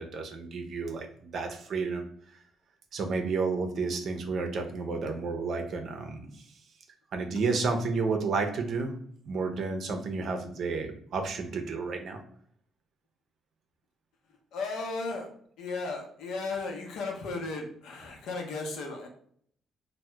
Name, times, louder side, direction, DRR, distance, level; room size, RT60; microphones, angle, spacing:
voice 1, 0.0-2.1 2.9-6.4 7.1-8.9 9.3-12.2, right 4 dB, 55° right, 5 dB, 0.5 m, -31 dB
voice 2, 14.5-15.3 15.6-19.1, left 3 dB, 85° left, 2 dB, 0.7 m, -35 dB
2.8 x 2.1 x 3.2 m, 0.63 s
cardioid pair, 135°, 0 cm